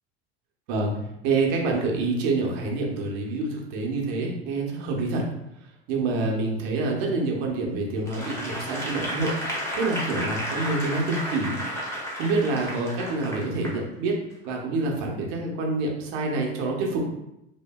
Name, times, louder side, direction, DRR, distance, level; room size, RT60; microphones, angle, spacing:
voice 1, 1.2-5.2 5.9-9.3 9.8-11.5 12.1-14.1 14.4-17.0, right 3 dB, 65° right, 0 dB, 0.8 m, -27 dB
Applause / Crowd, 8.0-13.8 14.3-14.4, equal, 10° left, 0.8 m, -32 dB
2.8 x 2.5 x 2.2 m, 0.86 s
hypercardioid pair, 90°, 32 cm